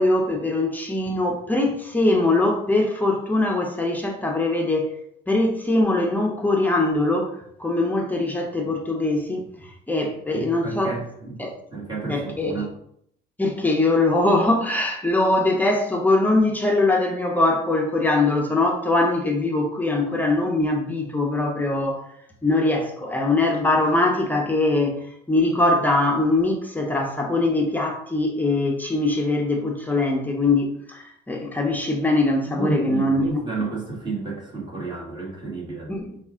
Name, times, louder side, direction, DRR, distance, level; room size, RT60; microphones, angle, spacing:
voice 1, 0.0-4.9 5.3-10.9 11.4-11.5 12.1-12.6 13.4-22.0 22.4-33.4 35.9-36.2, left 2 dB, 10° left, 1 dB, 0.7 m, -22 dB
voice 2, 10.3-11.4 11.7-12.7 32.4-35.9, right 3 dB, 25° right, -3 dB, 1.7 m, -31 dB
5.3 x 2.4 x 3.6 m, 0.72 s
cardioid pair, 110°, 17 cm